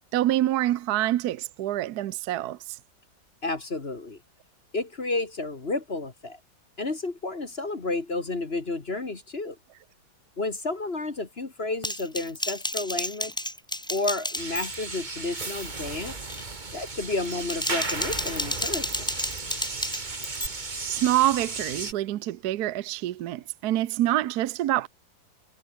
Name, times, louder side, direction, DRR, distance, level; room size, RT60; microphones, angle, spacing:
voice 1, 0.1-2.8 20.8-24.9, right 14 dB, 65° right, 1.1 m, -26 dB
voice 2, 3.4-4.2 4.7-6.4 6.8-9.6 10.4-13.3 13.9-16.2 16.7-19.1, left 2 dB, 30° left, 2.0 m, -31 dB
Typing, 11.8-15.0 15.3-15.7 16.1-16.4 17.2-20.5, left 1 dB, 5° left, 0.4 m, -32 dB
sound 1, 14.4-21.9, right 3 dB, 25° right, 1.8 m, -35 dB
omnidirectional pair, 2.1 m